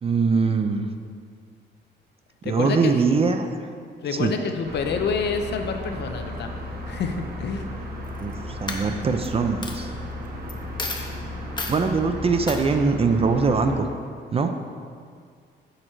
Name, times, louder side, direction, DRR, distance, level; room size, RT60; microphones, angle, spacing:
voice 1, 0.0-0.9 2.4-3.5 4.2-4.3 8.2-8.3 8.6-9.9 11.7-13.9 14.3-14.5, right 4 dB, 30° right, 6 dB, 0.5 m, -22 dB
voice 2, 2.4-2.9 4.0-6.5 6.9-7.7, left 5 dB, 60° left, 6 dB, 0.6 m, -28 dB
sound 1, 4.6-13.8, left 1 dB, 50° right, 1.1 m, -35 dB
Coin (dropping), 8.0-8.3 8.7-9.3 9.6-9.8 10.5-10.6 10.8-11.1 11.6-11.8 12.5-12.6, left 3 dB, 20° left, 0.7 m, -31 dB
6.5 x 4.4 x 4.5 m, 2.1 s
cardioid pair, 90°, 20 cm